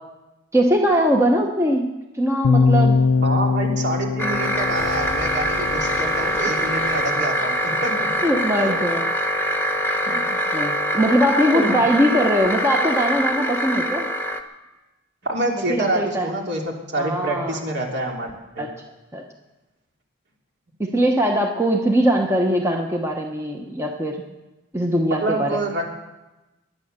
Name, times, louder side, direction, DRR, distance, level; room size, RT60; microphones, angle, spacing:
voice 1, 0.5-1.9 2.1-3.0 8.2-9.0 10.1-14.1 15.7-16.4 17.0-17.6 18.6-18.7 19.1-19.2 20.9-24.2 24.7-25.5, equal, 15° right, 2 dB, 1.0 m, -21 dB
sound 1, 2.4-6.5, left 4 dB, 90° left, 0.4 m, -21 dB
voice 2, 3.2-8.2 8.6-8.7 11.5-11.8 15.2-18.7 25.1-25.8, right 1 dB, 55° right, 0 dB, 3.0 m, -27 dB
sound 2, 4.2-14.4, equal, 10° left, 1.1 m, -24 dB
sound 3, 4.2-7.8, equal, 85° right, 3.5 m, -39 dB
21.5 x 9.5 x 6.7 m, 1.1 s
head